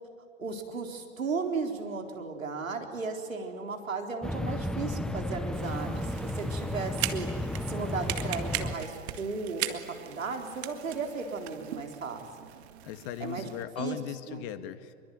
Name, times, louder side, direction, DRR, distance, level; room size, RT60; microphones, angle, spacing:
voice 1, 0.4-6.1 6.4-12.3 13.2-13.5 13.8-14.0 14.3-14.5, right 4 dB, 85° right, 4 dB, 4.1 m, -35 dB
sound 1, 4.2-8.7, left 1 dB, ahead, 0.9 m, -33 dB
sound 2, 5.5-13.6, right 13 dB, 55° right, 2.1 m, -39 dB
voice 2, 12.8-14.9, left 10 dB, 45° left, 10 dB, 2.0 m, -38 dB
26.0 x 23.0 x 9.5 m, 2.2 s
hypercardioid pair, 110°, 39 cm